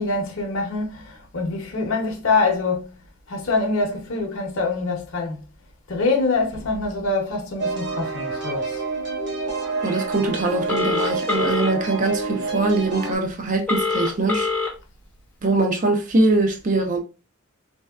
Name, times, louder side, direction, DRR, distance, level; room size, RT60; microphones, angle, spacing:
voice 1, 0.0-3.0 3.3-5.4 5.9-8.8, left 3 dB, 65° left, 0.7 m, -24 dB
sound 1, 7.6-13.2, right 3 dB, 50° right, 0.9 m, -28 dB
voice 2, 9.8-14.5 15.4-17.0, right 2 dB, 35° right, 0.5 m, -22 dB
Telephone, 10.7-11.7 13.7-14.7, left 4 dB, 5° left, 0.6 m, -23 dB
3.1 x 2.7 x 2.3 m
head